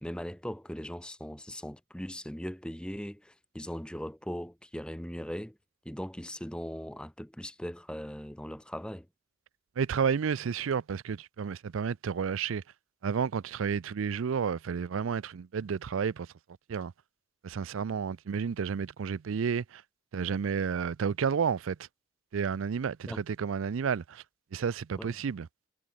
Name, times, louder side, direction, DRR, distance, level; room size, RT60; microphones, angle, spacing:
voice 1, 0.0-5.6 5.8-9.1 23.1-23.2 25.0-25.1, equal, 5° left, 0.9 m, -39 dB
voice 2, 9.8-12.6 13.0-16.3 16.7-16.9 17.4-19.8 20.1-21.8 22.3-24.2 24.5-25.5, right 6 dB, 85° right, 0.4 m, -31 dB
head